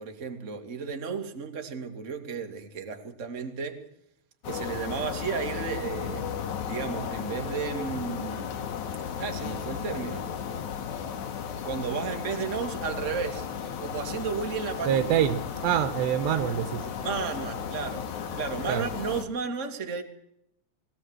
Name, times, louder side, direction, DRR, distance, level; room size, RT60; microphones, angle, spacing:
voice 1, 0.0-3.8 4.4-6.3 6.7-8.5 9.2-10.3 11.6-13.5 13.8-15.1 17.0-18.1 18.3-20.0, right 5 dB, 25° right, 5 dB, 1.9 m, -33 dB
sound 1, 4.4-19.2, left 7 dB, 55° left, 2.5 m, -35 dB
voice 2, 14.9-16.8 18.7-18.8, right 10 dB, 90° right, 11 dB, 3.6 m, -25 dB
21.5 x 17.5 x 8.1 m, 0.76 s
omnidirectional pair, 4.7 m